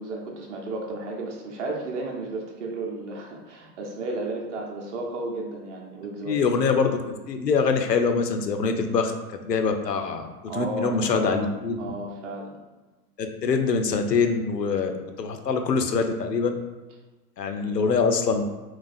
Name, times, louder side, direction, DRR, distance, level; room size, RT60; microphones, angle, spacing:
voice 1, 0.0-6.5 10.5-11.4 11.8-12.6 17.6-17.7, right 2 dB, 50° right, 0 dB, 0.8 m, -33 dB
voice 2, 6.2-7.0 7.3-9.1 9.4-10.3 10.5-11.8 13.2-16.6 17.4-18.4, left 5 dB, 85° left, 5 dB, 0.5 m, -24 dB
3.9 x 2.3 x 2.4 m, 1.2 s
figure-of-eight pair, 100°, 48 cm